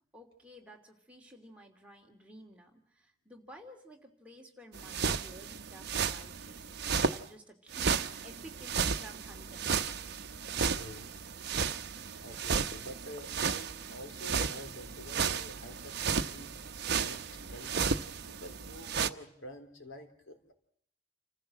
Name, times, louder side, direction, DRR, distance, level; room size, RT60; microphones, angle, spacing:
voice 1, 0.1-9.7, right 1 dB, 5° right, 1 dB, 2.9 m, -53 dB
sound 1, 4.7-7.2 7.7-19.1, right 6 dB, 55° right, 0.9 m, -34 dB
voice 2, 10.7-11.1 12.0-16.5 17.0-18.0 18.3-20.5, left 1 dB, 90° left, 6 dB, 3.7 m, -48 dB
29.0 x 15.0 x 7.6 m, 0.70 s
head